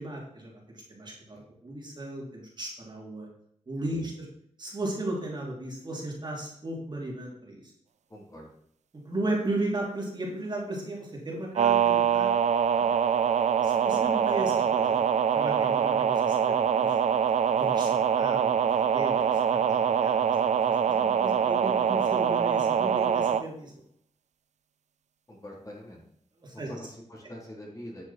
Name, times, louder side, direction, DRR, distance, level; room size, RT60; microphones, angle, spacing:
voice 1, 0.0-3.3 3.7-4.3 4.6-7.7 9.0-12.5 13.6-17.1 17.5-23.7 26.4-26.7, right 1 dB, 40° right, -3 dB, 3.4 m, -35 dB
voice 2, 8.1-8.5 12.7-12.8 19.1-19.3 25.3-26.0 26.7-28.0, left 1 dB, 30° left, -3 dB, 3.7 m, -44 dB
sound 1, 11.5-23.4, right 7 dB, 70° right, 0.5 m, -24 dB
11.0 x 7.0 x 4.5 m, 0.69 s
wide cardioid pair, 95°, 12 cm